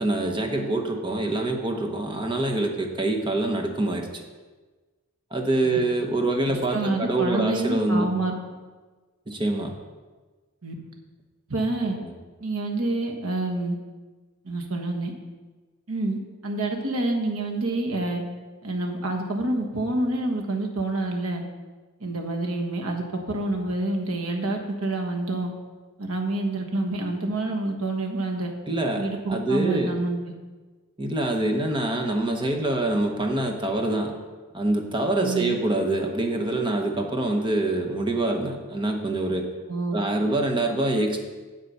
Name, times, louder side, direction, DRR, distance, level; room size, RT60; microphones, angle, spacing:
voice 1, 0.0-4.2 5.3-8.1 9.3-9.8 11.8-12.1 28.7-30.0 31.0-34.1 34.5-39.5 39.9-41.2, right 2 dB, 20° right, 3 dB, 1.0 m, -25 dB
voice 2, 6.5-8.4 10.6-10.7 11.5-12.0 12.4-13.8 14.4-15.1 15.9-18.2 18.6-21.4 22.0-25.5 26.0-28.5 29.0-30.2 35.2-35.6 39.7-39.9, right 2 dB, 75° right, 2 dB, 1.4 m, -27 dB
8.0 x 7.5 x 5.5 m, 1.3 s
head